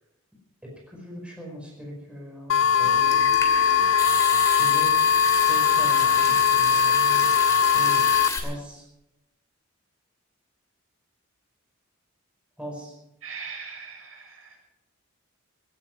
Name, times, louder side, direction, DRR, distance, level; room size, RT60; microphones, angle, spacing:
voice 1, 0.6-3.3 4.6-7.3 7.7-8.8 12.6-12.9, equal, 5° right, -2 dB, 5.1 m, -40 dB
sound 1, 2.5-8.3, left 7 dB, 65° left, 0.5 m, -20 dB
Water tap faucet / Sink (filling or washing) / Trickle dribble, 2.8-8.4, left 3 dB, 15° left, 2.6 m, -31 dB
voice 2, 13.2-14.6, right 5 dB, 75° right, 0 dB, 6.8 m, -40 dB
17.5 x 17.0 x 4.7 m, 0.85 s
head